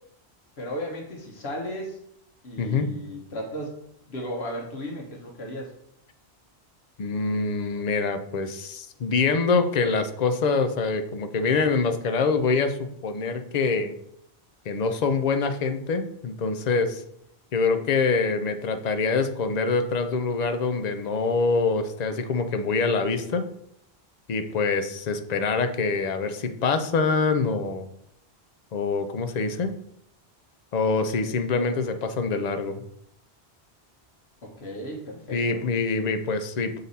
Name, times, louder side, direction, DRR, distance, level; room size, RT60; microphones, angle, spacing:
voice 1, 0.6-2.0 2.4-3.7 4.0-5.7 34.4-35.6, equal, 75° left, 0 dB, 1.4 m, -35 dB
voice 2, 2.6-2.9 7.0-13.9 14.7-17.0 17.5-23.4 24.3-27.9 28.7-29.7 30.7-32.8 35.3-36.8, left 4 dB, 45° left, 8 dB, 0.6 m, -25 dB
6.7 x 4.0 x 4.1 m, 0.73 s
omnidirectional pair, 1.1 m